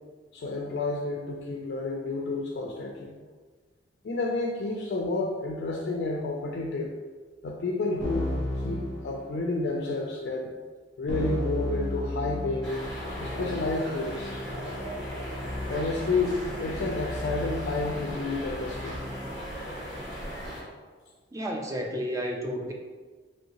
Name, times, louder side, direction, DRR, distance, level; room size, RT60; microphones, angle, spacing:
voice 1, 0.3-3.2 4.0-6.9 7.4-8.3 8.6-10.5 11.0-12.7 13.2-14.3 15.7-19.0, left 3 dB, 60° left, 0 dB, 0.3 m, -30 dB
Keyboard (musical), 8.0-9.7 11.1-19.5, left 1 dB, 45° right, 0.8 m, -35 dB
sound 1, 12.6-20.6, equal, ahead, 1.5 m, -37 dB
voice 2, 21.3-22.7, equal, 15° right, 1 dB, 0.3 m, -31 dB
3.1 x 2.7 x 2.8 m, 1.4 s
head